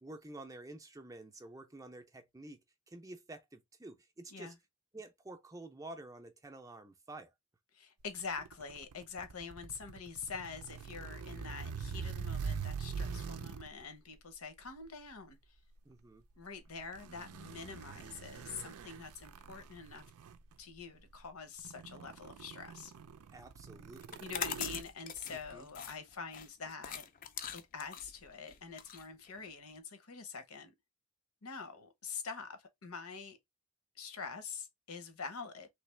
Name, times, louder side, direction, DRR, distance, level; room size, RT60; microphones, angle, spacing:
voice 1, 0.0-4.5 4.9-7.3 15.8-16.2 23.3-24.3 25.3-25.7, right 2 dB, 15° right, 0.5 m, -50 dB
voice 2, 7.7-15.4 16.4-20.0 20.6-22.9 24.2-27.1 27.5-30.7 31.4-33.4 34.0-35.7, left 5 dB, 75° left, 0.9 m, -45 dB
sound 1, 8.2-13.8 14.6-14.9 16.8-20.6 21.1-21.2 21.6-24.8, right 6 dB, 85° right, 0.5 m, -43 dB
sound 2, 24.0-29.8, left 8 dB, 40° left, 0.4 m, -43 dB
3.3 x 2.9 x 3.2 m
head